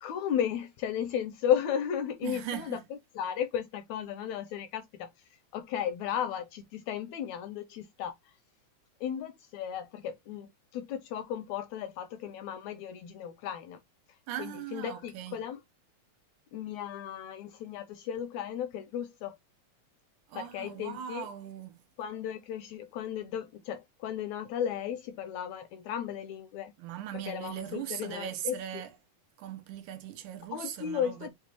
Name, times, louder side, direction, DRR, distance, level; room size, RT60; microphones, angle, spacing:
voice 1, 0.0-5.1 5.5-8.1 9.0-13.8 14.4-15.6 16.5-19.4 20.3-21.3 22.0-26.7 27.1-28.8 30.5-31.3, left 9 dB, 80° left, 1.7 m, -35 dB
voice 2, 2.2-2.8 14.3-15.4 20.3-21.8 26.8-28.9 29.4-31.3, right 11 dB, 85° right, 2.2 m, -39 dB
7.1 x 2.4 x 2.9 m
omnidirectional pair, 3.6 m